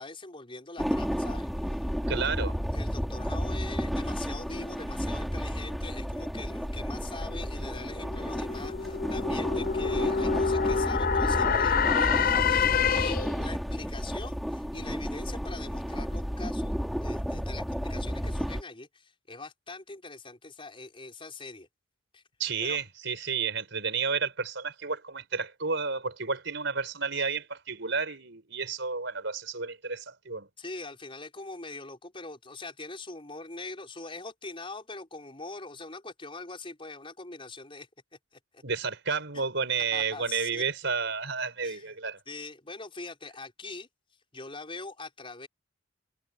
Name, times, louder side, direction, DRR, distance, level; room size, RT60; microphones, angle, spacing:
voice 1, 0.0-1.9 2.7-16.7 17.0-21.7 22.1-22.2 22.6-22.8 30.6-37.9 38.3-38.6 39.3-39.5 39.9-40.6 41.6-41.9 42.3-43.9 44.3-45.5, left 3 dB, 25° left, 5.3 m, -42 dB
sound 1, 0.8-18.6, equal, ahead, 3.6 m, -32 dB
voice 2, 2.1-2.5 22.4-30.5 38.6-42.2, right 5 dB, 65° right, 5.5 m, -31 dB
sound 2, 7.3-13.5, left 6 dB, 45° left, 0.6 m, -27 dB
head